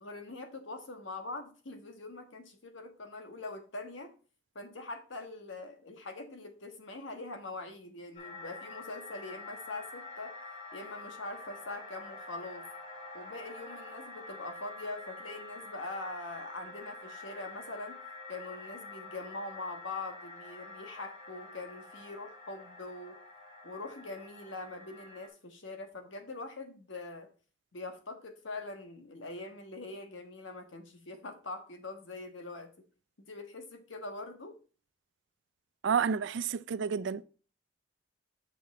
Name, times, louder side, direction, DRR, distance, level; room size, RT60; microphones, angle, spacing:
voice 1, 0.0-4.1 4.5-10.3 10.7-12.6 13.1-18.0 18.3-23.2 23.6-27.3 27.7-32.8 33.2-34.6, left 2 dB, 80° left, 1.3 m, -43 dB
sound 1, 8.2-25.3, left 3 dB, 40° left, 2.3 m, -47 dB
voice 2, 35.8-37.2, right 6 dB, 70° right, 0.4 m, -30 dB
6.9 x 5.6 x 4.1 m
head